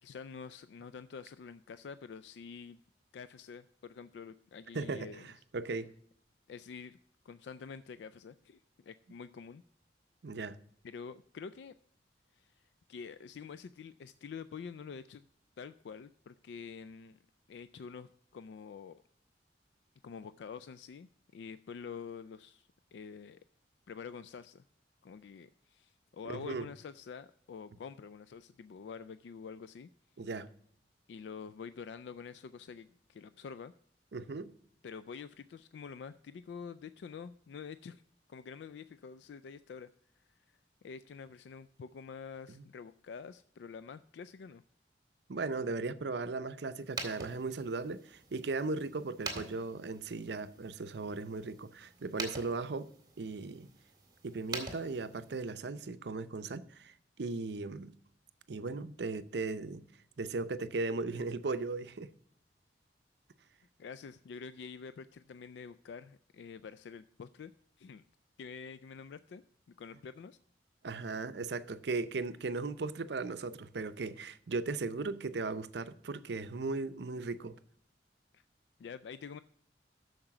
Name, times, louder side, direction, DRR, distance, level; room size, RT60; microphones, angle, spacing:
voice 1, 0.0-2.8 3.1-5.3 6.5-7.0 7.2-9.6 10.8-11.7 12.3-12.6 12.9-15.3 15.6-17.2 17.5-19.0 20.0-23.4 23.9-24.6 25.0-29.9 31.1-33.7 34.8-38.0 38.3-39.9 40.3-40.6 40.8-44.6 63.8-67.5 67.8-68.0 68.4-69.4 69.8-70.4 78.3-78.4 78.8-79.4, left 6 dB, 70° left, 0.3 m, -47 dB
voice 2, 4.7-5.9 10.2-10.6 26.2-26.7 30.2-30.5 34.1-34.5 42.5-42.6 45.3-52.9 53.2-53.7 54.2-57.9 58.5-59.8 60.2-62.1 70.8-77.6, right 3 dB, 65° right, 0.6 m, -37 dB
sound 1, 46.8-55.5, right 3 dB, 25° right, 1.9 m, -46 dB
8.7 x 6.6 x 5.9 m
head